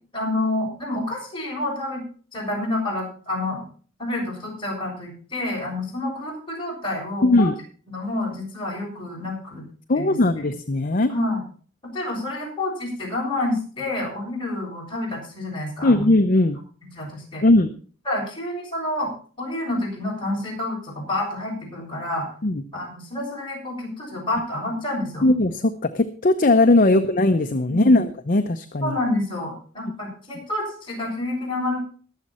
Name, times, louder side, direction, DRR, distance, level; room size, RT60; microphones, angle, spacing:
voice 1, 0.1-2.0 2.3-3.6 4.0-7.5 7.9-9.6 9.9-10.5 11.1-11.4 11.9-16.1 16.9-17.4 18.0-19.1 19.4-22.3 22.7-25.3 27.7-28.0 28.8-31.8, left 2 dB, 25° left, -3 dB, 6.7 m, -28 dB
voice 2, 7.2-7.5 9.9-11.1 15.8-16.6 17.4-17.7 22.4-22.6 25.2-29.0, left 2 dB, 45° left, 8 dB, 0.7 m, -19 dB
21.0 x 7.4 x 4.3 m, 0.42 s
head